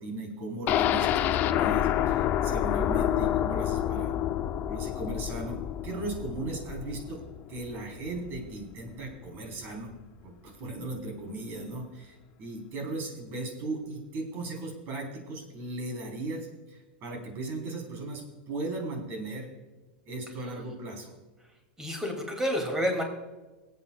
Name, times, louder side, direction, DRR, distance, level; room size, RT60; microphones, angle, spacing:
voice 1, 0.0-4.1 4.7-7.2 7.5-9.9 10.2-19.5 20.1-21.1, right 2 dB, 40° right, 1 dB, 3.6 m, -37 dB
sound 1, 0.7-8.5 8.9-9.0 9.3-9.4, left 11 dB, 35° left, 0.5 m, -28 dB
voice 2, 21.8-23.0, equal, 10° right, 2 dB, 2.4 m, -29 dB
24.0 x 8.4 x 2.3 m, 1.2 s
supercardioid pair, 130°, 5 cm